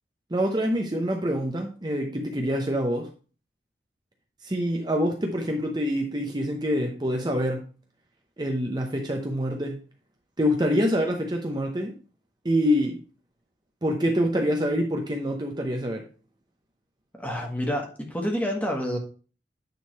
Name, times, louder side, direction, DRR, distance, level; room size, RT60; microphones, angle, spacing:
voice 1, 0.3-3.1 4.4-7.7 8.4-9.8 10.4-12.0 12.4-13.0 13.8-16.0, equal, 25° right, 0.8 m, -26 dB
voice 2, 17.2-19.0, equal, 10° left, 1.5 m, -28 dB
9.1 x 3.7 x 4.6 m
head